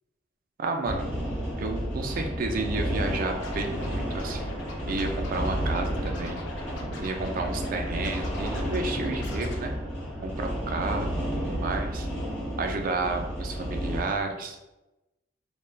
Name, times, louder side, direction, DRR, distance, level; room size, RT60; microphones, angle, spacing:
voice 1, 0.6-1.1 1.6-4.6 4.9-6.4 7.0-9.7 10.2-12.1 12.6-14.6, right 3 dB, 50° right, 4 dB, 0.3 m, -31 dB
sound 1, 0.9-14.0, equal, 5° left, 1.1 m, -31 dB
Scratching (performance technique), 3.4-9.6, left 1 dB, 90° left, 0.5 m, -40 dB
3.1 x 2.2 x 2.3 m, 0.99 s
head